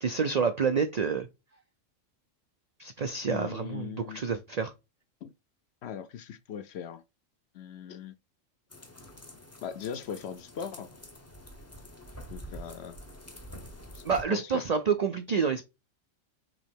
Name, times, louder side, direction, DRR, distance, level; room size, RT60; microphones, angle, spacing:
voice 1, 0.0-1.3 2.8-4.7 14.0-15.7, right 6 dB, 85° right, 0.3 m, -28 dB
voice 2, 3.3-4.2 5.2-5.3 5.8-7.0 7.5-8.1 9.6-10.9 12.3-13.0 13.9-14.6, left 8 dB, 65° left, 0.7 m, -39 dB
sound 1, 8.7-14.2, equal, 20° left, 0.5 m, -47 dB
4.8 x 3.1 x 3.3 m
omnidirectional pair, 1.3 m